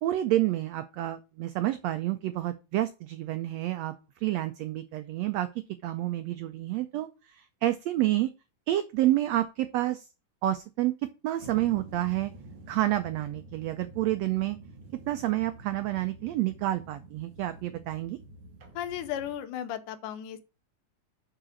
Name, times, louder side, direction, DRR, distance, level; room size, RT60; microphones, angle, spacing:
voice 1, 0.0-5.5 5.8-8.3 8.7-10.1 10.4-10.9 11.2-12.3 12.7-14.6 15.1-18.2, right 14 dB, 90° right, 1.4 m, -29 dB
sound 1, 11.4-19.3, right 2 dB, 45° right, 2.0 m, -48 dB
voice 2, 18.8-20.4, left 10 dB, 80° left, 2.3 m, -35 dB
7.5 x 4.9 x 6.4 m
omnidirectional pair, 3.7 m